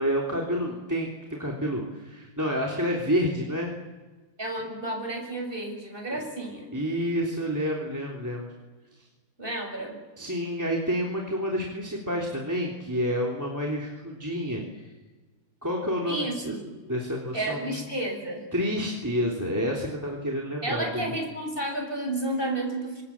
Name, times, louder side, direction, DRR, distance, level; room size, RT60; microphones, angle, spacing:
voice 1, 0.0-3.7 6.7-8.5 10.2-14.8 15.6-16.5 16.9-17.8 18.5-21.1, equal, 10° right, -1 dB, 3.3 m, -29 dB
voice 2, 4.4-6.7 9.4-10.0 16.1-16.8 17.3-18.4 20.6-23.0, right 1 dB, 25° right, 2 dB, 7.3 m, -31 dB
28.5 x 26.0 x 7.4 m, 1.3 s
omnidirectional pair, 2.3 m